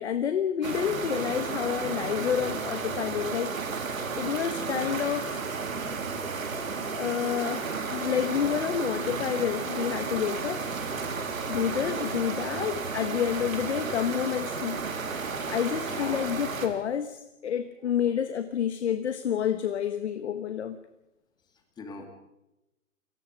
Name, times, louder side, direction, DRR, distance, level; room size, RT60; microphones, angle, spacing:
voice 1, 0.0-3.5 3.8-5.4 6.9-10.7 11.5-14.8 15.5-20.8, left 8 dB, 50° left, 10 dB, 1.2 m, -29 dB
sound 1, 0.6-16.7, right 4 dB, 70° right, 3.7 m, -33 dB
voice 2, 15.9-16.2 21.8-22.1, left 4 dB, 10° left, 4 dB, 2.3 m, -40 dB
28.0 x 18.5 x 5.1 m, 0.93 s
hypercardioid pair, 145°, 42 cm